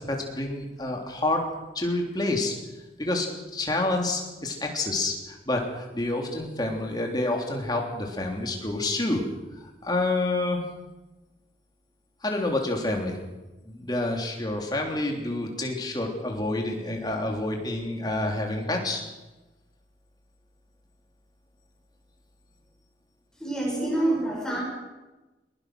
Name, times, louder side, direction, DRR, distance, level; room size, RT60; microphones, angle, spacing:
voice 1, 0.0-1.5 1.7-2.5 3.0-9.2 9.6-10.6 12.2-13.2 13.7-19.0, left 2 dB, 25° left, 1 dB, 3.4 m, -28 dB
voice 2, 23.3-24.6, right 1 dB, 5° left, -2 dB, 6.4 m, -27 dB
21.5 x 21.0 x 6.3 m, 1.1 s
head